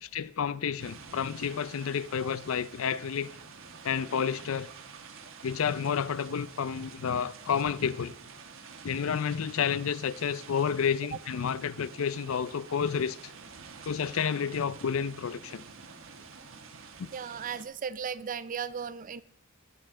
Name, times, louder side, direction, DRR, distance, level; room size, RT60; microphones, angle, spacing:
voice 1, 0.0-3.3 3.8-4.7 5.4-8.1 8.8-13.3 13.9-15.6 17.0-17.1, left 7 dB, 65° left, 0.4 m, -30 dB
sound 1, 0.8-17.6, right 5 dB, 65° right, 1.3 m, -49 dB
voice 2, 17.1-19.2, right 7 dB, 40° right, 0.4 m, -36 dB
20.0 x 7.8 x 3.7 m
head